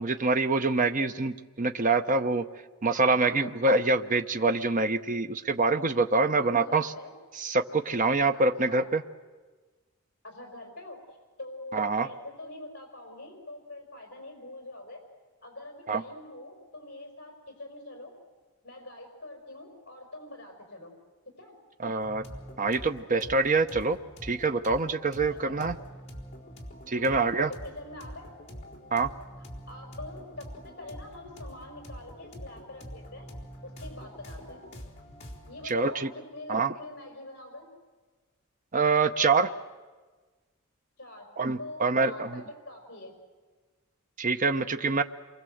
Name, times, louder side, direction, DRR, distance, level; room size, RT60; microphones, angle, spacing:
voice 1, 0.0-2.4 2.8-6.9 7.3-9.0 11.7-12.1 15.9-16.0 21.8-22.2 22.6-25.7 26.9-27.5 28.9-29.1 35.6-36.1 36.5-36.7 38.7-39.5 41.4-42.3 44.2-45.0, right 3 dB, 40° right, 9 dB, 0.8 m, -25 dB
voice 2, 2.9-3.5 6.2-7.1 8.3-8.8 10.2-11.0 11.4-15.0 15.4-18.1 18.6-20.9 21.4-21.5 25.2-25.7 26.9-27.2 27.5-28.3 29.7-33.3 33.6-34.7 35.5-37.7 41.0-41.3 41.6-43.1, left 2 dB, 50° left, 2 dB, 5.1 m, -44 dB
sound 1, 22.0-35.7, equal, 35° left, 4.1 m, -45 dB
28.0 x 23.5 x 7.8 m, 1.3 s
head